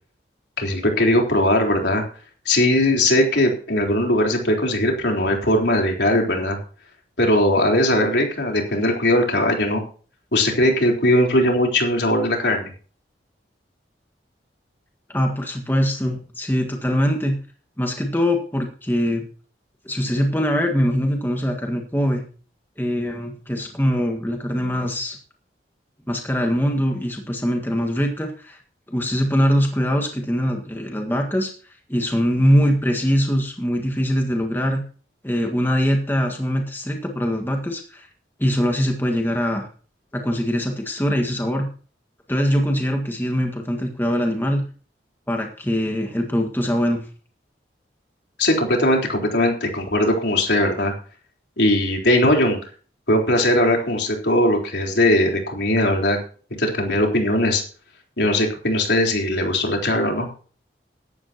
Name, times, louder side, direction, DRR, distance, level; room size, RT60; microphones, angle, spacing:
voice 1, 0.6-2.0 2.5-6.6 7.2-9.8 10.3-12.7 48.4-50.9 51.6-52.6 53.1-56.2 56.6-57.6 58.2-60.3, left 1 dB, 70° left, 1 dB, 3.9 m, -19 dB
voice 2, 15.1-17.4 17.8-19.2 19.8-22.2 22.8-25.2 26.1-28.6 28.9-31.5 31.9-34.8 35.2-38.1 38.4-39.7 40.1-41.7 42.3-44.6 45.3-47.0, equal, 10° left, 2 dB, 1.7 m, -22 dB
16.0 x 12.0 x 2.9 m, 0.40 s
head